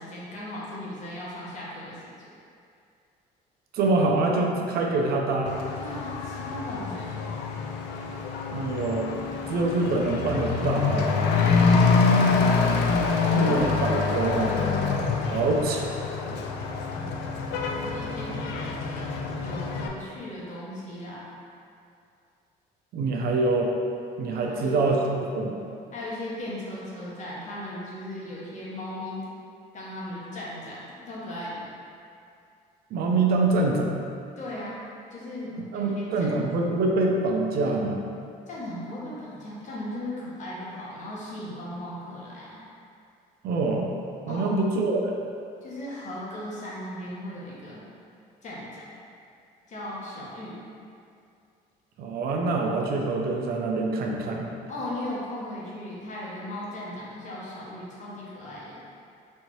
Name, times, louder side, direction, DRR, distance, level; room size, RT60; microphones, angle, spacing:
voice 1, 0.0-2.3 5.8-7.2 13.0-13.5 15.2-15.6 16.9-17.3 17.7-21.2 24.4-25.0 25.9-29.3 29.7-31.7 34.4-34.8 35.1-36.3 38.5-42.6 44.3-44.6 45.6-47.8 48.4-48.8 49.7-50.6 54.7-58.9, left 1 dB, 45° left, -6 dB, 1.1 m, -37 dB
voice 2, 3.7-5.6 8.5-9.1 9.5-11.1 13.3-14.6 15.3-15.8 16.2-16.4 22.9-23.7 24.2-25.0 25.3-25.6 32.9-33.9 35.6-38.0 43.4-43.9 44.3-45.1 52.0-54.5, right 3 dB, 65° right, 0 dB, 0.5 m, -25 dB
Truck / Accelerating revving vroom, 5.5-19.9, left 4 dB, 80° left, 0.4 m, -26 dB
4.3 x 2.7 x 3.0 m, 2.4 s
cardioid pair, 110°, 17 cm